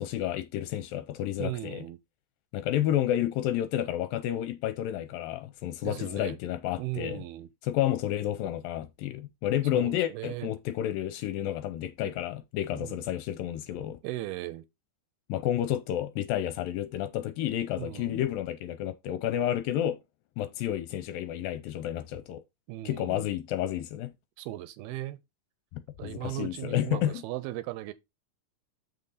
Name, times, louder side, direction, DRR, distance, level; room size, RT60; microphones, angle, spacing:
voice 1, 0.0-1.9 2.5-7.2 7.6-14.0 15.3-20.0 20.4-22.4 22.9-24.1 25.7-27.2, left 12 dB, 80° left, 2.2 m, -30 dB
voice 2, 1.4-2.0 5.8-6.4 6.8-7.5 9.7-10.5 12.7-13.0 14.0-14.7 17.8-18.2 22.7-23.3 24.4-25.2 26.0-27.9, right 16 dB, 85° right, 2.5 m, -37 dB
6.8 x 5.5 x 4.0 m
omnidirectional pair, 4.5 m